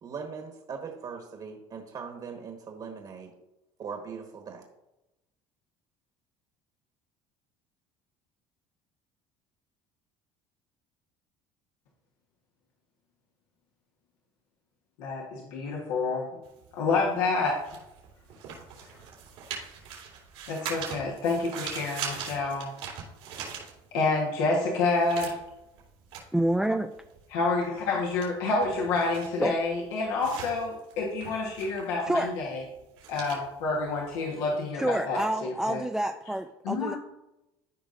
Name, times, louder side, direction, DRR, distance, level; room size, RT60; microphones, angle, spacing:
voice 1, 0.0-3.3 3.8-4.6, right 5 dB, 45° right, 2 dB, 1.4 m, -40 dB
voice 2, 15.0-16.4 16.7-17.6 20.5-22.7 23.9-25.4 27.3-32.6 33.1-35.8 36.6-37.0, left 3 dB, 85° left, -2 dB, 1.3 m, -28 dB
sound 1, 16.4-24.2 24.5-34.6, right 7 dB, 85° right, 2.9 m, -42 dB
voice 3, 26.3-26.9 29.4-29.6 32.1-32.3 34.7-37.0, right 1 dB, 5° right, 6 dB, 0.4 m, -28 dB
14.0 x 5.1 x 2.6 m, 0.93 s
supercardioid pair, 95°, 12 cm